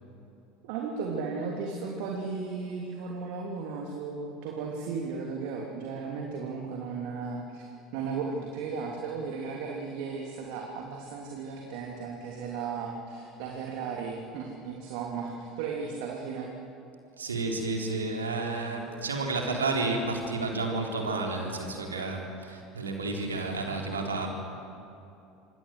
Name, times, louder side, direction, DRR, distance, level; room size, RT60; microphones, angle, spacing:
voice 1, 0.6-7.7 7.9-16.5, right 5 dB, 55° right, 0 dB, 3.1 m, -35 dB
voice 2, 17.2-24.3, right 3 dB, 80° right, 1 dB, 4.0 m, -31 dB
26.5 x 23.0 x 7.9 m, 2.8 s
figure-of-eight pair, 70°, 0 cm